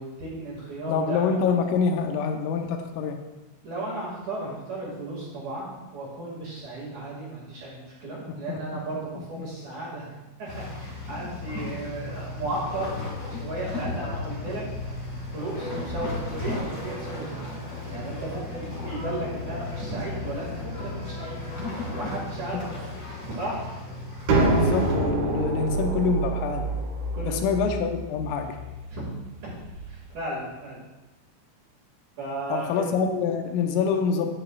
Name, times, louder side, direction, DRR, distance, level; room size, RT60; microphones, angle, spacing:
voice 1, 0.0-1.2 3.6-10.1 10.4-14.6 15.3-21.4 22.0-22.7 23.3-23.6 27.1-27.7 28.9-29.0 29.9-30.8 32.2-32.8, right 2 dB, 50° right, -6 dB, 2.6 m, -35 dB
voice 2, 0.9-3.2 8.3-8.6 9.2-9.3 24.3-26.7 27.3-28.6 32.5-34.3, left 6 dB, 90° left, 5 dB, 3.4 m, -26 dB
sound 1, 10.5-24.9, left 2 dB, 35° left, 1.3 m, -35 dB
Bowed string instrument, 15.5-22.9, left 1 dB, 60° left, 2.5 m, -42 dB
sound 2, 24.3-29.9, right 2 dB, 70° right, 4.2 m, -26 dB
11.0 x 9.8 x 2.4 m, 1.1 s
omnidirectional pair, 5.8 m